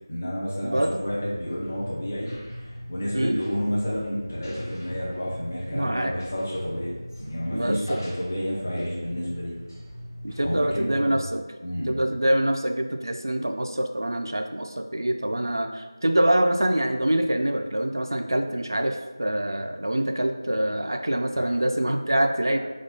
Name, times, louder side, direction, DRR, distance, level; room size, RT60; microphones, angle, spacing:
voice 1, 0.1-2.3 2.9-9.5 10.4-11.2 11.6-12.0 21.3-21.5, equal, 20° left, -7 dB, 0.5 m, -30 dB
voice 2, 0.6-1.0 3.1-3.4 5.7-6.2 7.5-8.1 10.2-11.4 11.9-22.6, right 1 dB, 60° right, 5 dB, 0.3 m, -25 dB
sound 1, 1.0-10.8, equal, 40° left, 1.0 m, -41 dB
4.0 x 2.2 x 2.9 m, 1.3 s
figure-of-eight pair, 175°, 2 cm